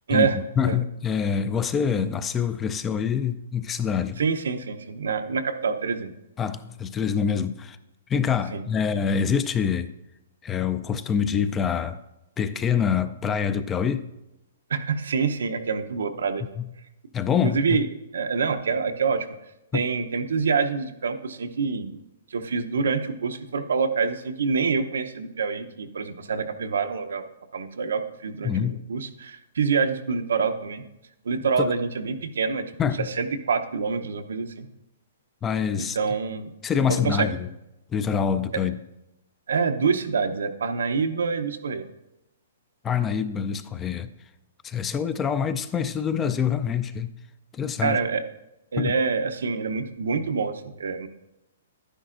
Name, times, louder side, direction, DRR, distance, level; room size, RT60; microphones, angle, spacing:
voice 1, 0.6-4.2 6.4-7.8 8.1-9.9 10.4-12.0 12.4-14.0 16.6-16.7 17.1-17.8 19.7-19.8 28.4-28.8 31.6-31.7 32.8-33.1 35.4-36.0 36.6-37.5 37.9-38.8 42.8-44.1 44.6-47.1 47.5-48.0 48.8-49.0, left 7 dB, 15° left, 0.3 m, -25 dB
voice 2, 4.2-6.1 8.5-8.6 14.7-16.4 17.4-17.9 18.1-19.3 19.7-22.0 22.3-28.5 28.9-30.8 31.2-32.6 33.1-34.7 35.8-36.5 36.9-37.3 38.5-38.6 39.5-41.8 47.8-48.2 48.7-51.1, right 5 dB, 85° right, 0.7 m, -26 dB
11.0 x 9.9 x 2.5 m
hypercardioid pair, 160°, 0 cm